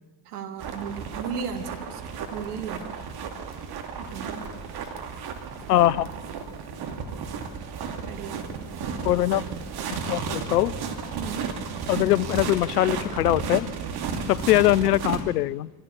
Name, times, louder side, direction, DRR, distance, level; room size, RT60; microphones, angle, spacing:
voice 1, 0.3-2.9 4.0-4.5 8.0-8.4 11.1-11.5, right 6 dB, 75° right, 6 dB, 2.2 m, -35 dB
sound 1, 0.6-15.2, right 5 dB, 55° right, 2.7 m, -33 dB
voice 2, 5.7-6.1 9.0-9.4 9.9-10.7 11.9-13.7 14.3-15.7, left 14 dB, 80° left, 22 dB, 0.6 m, -22 dB
24.5 x 15.0 x 7.2 m, 1.3 s
figure-of-eight pair, 60°, 46 cm